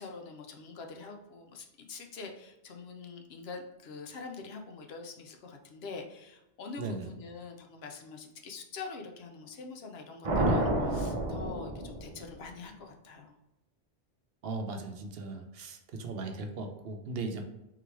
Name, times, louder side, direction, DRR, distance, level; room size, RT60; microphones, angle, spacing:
voice 1, 0.0-13.4, left 4 dB, 70° left, 4 dB, 0.9 m, -45 dB
sound 1, 10.2-12.5, right 1 dB, 40° right, 0.6 m, -29 dB
voice 2, 14.4-17.4, right 3 dB, 65° right, 4 dB, 0.8 m, -38 dB
3.8 x 3.2 x 3.3 m, 0.95 s
omnidirectional pair, 1.1 m